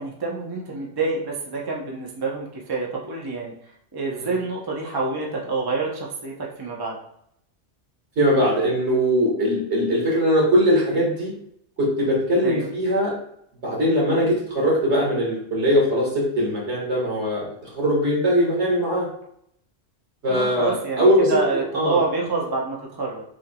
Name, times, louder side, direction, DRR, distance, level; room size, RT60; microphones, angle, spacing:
voice 1, 0.0-3.5 3.9-7.0 12.4-12.7 20.3-23.2, right 3 dB, 25° right, -2 dB, 0.7 m, -27 dB
voice 2, 8.2-11.3 11.8-13.1 13.6-17.4 17.7-19.1 20.2-22.0, equal, 65° right, -4 dB, 2.0 m, -21 dB
6.1 x 3.4 x 2.3 m, 0.72 s
omnidirectional pair, 1.2 m